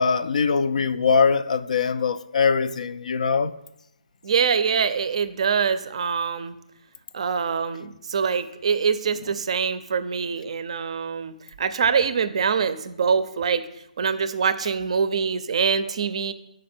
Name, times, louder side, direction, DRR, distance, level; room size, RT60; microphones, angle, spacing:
voice 1, 0.0-3.5, left 5 dB, 60° left, 0.4 m, -22 dB
voice 2, 4.2-6.6 7.1-13.7 14.0-16.3, right 6 dB, 45° right, 0.5 m, -24 dB
7.5 x 5.2 x 4.3 m
hypercardioid pair, 165°, 4 cm